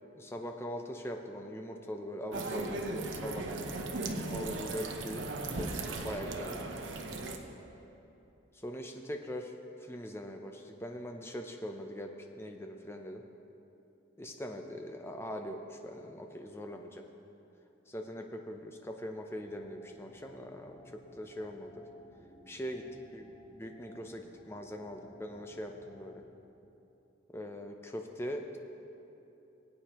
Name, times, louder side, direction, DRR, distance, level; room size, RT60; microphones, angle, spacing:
voice 1, 0.2-3.8 4.3-5.3 5.5-5.8 6.0-6.7 8.5-9.5 9.8-12.1 12.4-13.2 14.2-17.0 17.9-21.9 22.5-22.8 23.1-23.2 23.6-26.2 27.3-28.6, equal, 10° left, 3 dB, 0.6 m, -41 dB
sound 1, 2.3-7.4, right 2 dB, 70° right, 0.8 m, -37 dB
sound 2, 19.3-26.2, left 1 dB, 35° left, 2.8 m, -58 dB
20.5 x 8.6 x 3.0 m, 2.9 s
head